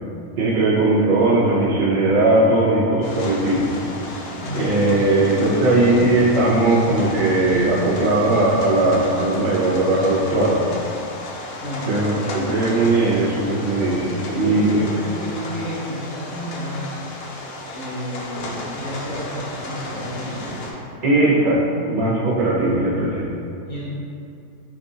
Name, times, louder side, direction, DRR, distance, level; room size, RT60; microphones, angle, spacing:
voice 1, 0.4-3.7 4.5-10.6 11.9-14.8 21.0-23.3, right 2 dB, 40° right, -9 dB, 1.0 m, -18 dB
sound 1, 3.0-20.7, left 1 dB, 65° left, 0.6 m, -33 dB
voice 2, 4.0-4.8 11.6-12.0 14.2-16.9 17.7-20.4 23.6-23.8, equal, 30° left, -9 dB, 1.1 m, -31 dB
4.8 x 2.5 x 2.6 m, 2.6 s
omnidirectional pair, 1.5 m